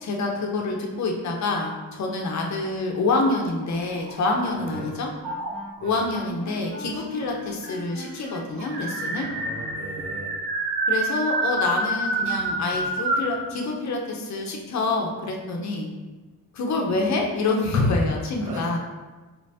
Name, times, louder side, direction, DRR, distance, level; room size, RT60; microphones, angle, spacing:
voice 1, 0.0-5.1 5.8-9.3 10.9-15.9 16.5-18.8, left 3 dB, 50° left, 1 dB, 0.7 m, -26 dB
sound 1, 3.4-4.7 5.2-5.9 6.9-7.0 7.2-7.3 7.6-13.4, right 2 dB, 90° right, 0.6 m, -28 dB
Wind instrument woodwind instrument, 4.6-10.3, left 1 dB, 20° right, 1.2 m, -41 dB
voice 2, 9.3-10.4 18.4-18.8, right 2 dB, 60° right, -3 dB, 1.2 m, -38 dB
4.4 x 3.3 x 2.7 m, 1.2 s
cardioid pair, 115°, 35 cm